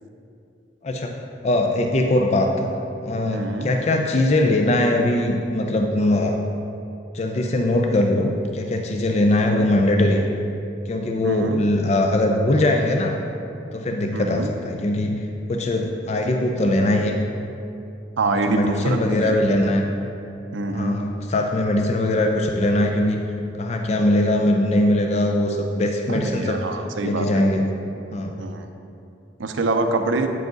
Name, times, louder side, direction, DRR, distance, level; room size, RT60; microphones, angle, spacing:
voice 1, 0.8-1.2 1.4-2.7 3.0-6.4 7.1-10.2 10.9-13.2 13.7-17.2 18.5-19.9 20.7-23.2 23.6-26.6 27.0-27.7 28.1-28.3, left 1 dB, 35° left, 3 dB, 0.4 m, -21 dB
voice 2, 3.3-3.7 9.5-9.7 11.2-11.6 14.1-14.5 18.2-19.4 20.5-21.0 26.1-27.5 28.4-28.7 29.4-30.3, right 3 dB, 80° right, 6 dB, 0.5 m, -25 dB
8.5 x 4.7 x 3.9 m, 2.7 s
head